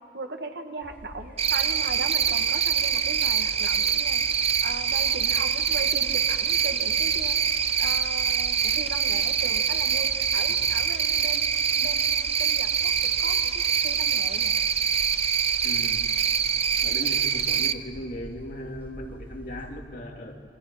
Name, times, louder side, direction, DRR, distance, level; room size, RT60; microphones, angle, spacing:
voice 1, 0.1-7.4 7.8-12.7 13.0-14.5, right 3 dB, 70° right, 5 dB, 1.7 m, -38 dB
sound 1, 0.8-19.7, equal, 10° right, 4.9 m, -45 dB
Cricket, 1.4-17.7, right 7 dB, 35° right, 0.6 m, -24 dB
voice 2, 15.6-16.1 16.8-20.3, equal, 55° left, 0 dB, 3.0 m, -37 dB
27.5 x 24.5 x 5.7 m, 2.4 s
head